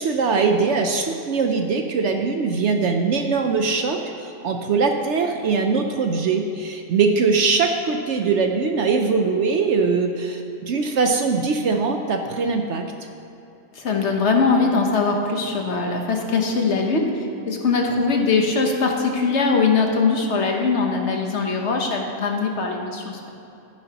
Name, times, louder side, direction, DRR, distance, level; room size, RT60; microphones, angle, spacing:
voice 1, 0.0-12.9, right 4 dB, 60° right, 4 dB, 0.9 m, -21 dB
voice 2, 13.8-17.1 17.5-23.3, left 4 dB, 55° left, 2 dB, 1.2 m, -21 dB
13.5 x 9.9 x 2.9 m, 2.8 s
omnidirectional pair, 1.5 m